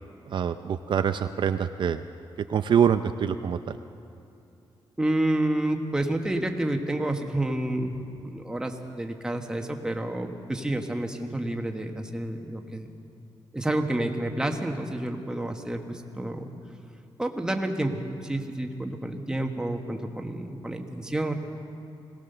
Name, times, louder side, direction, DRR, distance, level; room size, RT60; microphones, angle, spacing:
voice 1, 0.3-2.0 2.5-3.8, right 8 dB, 60° right, 9 dB, 0.5 m, -25 dB
voice 2, 5.0-8.0 8.3-12.9 13.5-16.5 17.2-21.3, right 1 dB, 10° right, 3 dB, 1.3 m, -29 dB
21.5 x 18.0 x 6.8 m, 2.6 s
wide cardioid pair, 160°, 9 cm